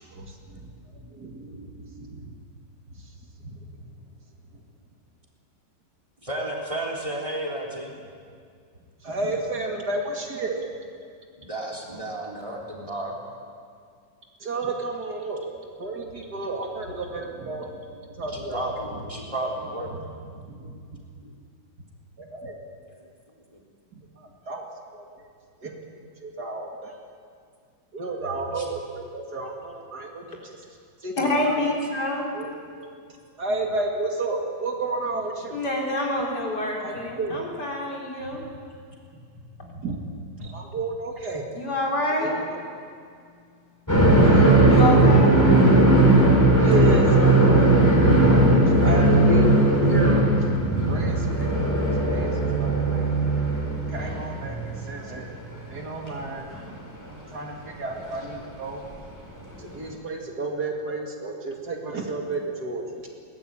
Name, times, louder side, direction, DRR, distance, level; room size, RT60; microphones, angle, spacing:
voice 1, 0.2-0.7 1.1-2.3 3.4-3.6 9.0-10.6 14.4-15.4 15.8-17.8 18.2-18.7 19.9-20.0 20.4-21.0 22.2-22.5 24.2-24.7 24.9-25.1 25.6-25.7 26.2-26.9 27.9-30.5 31.0-31.6 32.3-32.5 32.8-32.9 33.4-35.6 36.8-37.5 39.7-40.0 40.4-41.4 42.2-42.6 44.2-44.6 46.6-47.9 48.8-50.4 50.9-52.3 52.6-53.0 53.9-55.3 55.7-56.5 57.3-58.8 59.6-62.8, right 2 dB, 55° right, 1 dB, 2.8 m, -31 dB
voice 2, 6.2-7.9 11.4-13.2 16.2-16.3 18.3-19.9 28.4-28.7 32.4-32.5 57.1-57.4, right 1 dB, 15° right, 0 dB, 3.6 m, -32 dB
voice 3, 31.2-32.3 35.5-38.4 41.5-42.3 44.6-45.3 48.3-48.7, left 1 dB, 55° left, -1 dB, 4.5 m, -27 dB
sound 1, 43.9-54.9 55.2-55.3 56.5-56.6 58.1-58.2 59.7-59.8, right 2 dB, 10° left, 4.6 m, -18 dB
22.0 x 18.5 x 9.1 m, 2.2 s
omnidirectional pair, 2.1 m